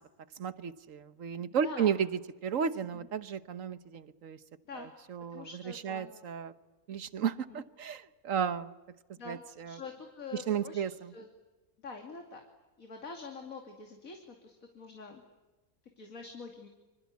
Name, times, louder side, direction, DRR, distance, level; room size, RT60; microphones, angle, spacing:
voice 1, 0.4-2.1 2.4-4.4 5.1-5.5 5.8-6.5 6.9-8.7 9.3-9.8 10.5-10.9, right 7 dB, 65° right, 14 dB, 1.4 m, -33 dB
voice 2, 1.4-2.0 2.8-3.1 4.7-4.9 5.3-6.4 7.5-7.6 9.2-10.8 11.1-11.3 11.8-12.4 12.8-15.2 16.0-16.7, left 4 dB, 65° left, 3 dB, 3.1 m, -46 dB
26.0 x 26.0 x 8.4 m, 1.2 s
omnidirectional pair, 1.5 m